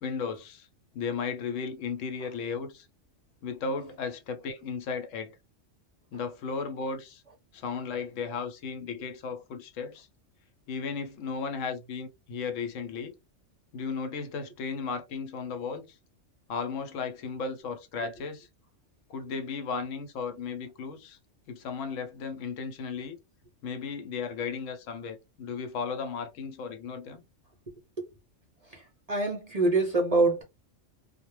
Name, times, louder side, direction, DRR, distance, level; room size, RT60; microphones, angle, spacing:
voice 1, 0.0-0.7 0.9-2.9 3.4-5.4 6.1-7.2 7.5-10.1 10.7-13.1 13.7-16.0 16.5-18.5 19.1-21.2 21.5-23.2 23.6-27.2, left 5 dB, 80° left, 0.9 m, -35 dB
voice 2, 29.1-30.4, right 3 dB, 50° right, 0.5 m, -25 dB
2.2 x 2.1 x 3.0 m
omnidirectional pair, 1.3 m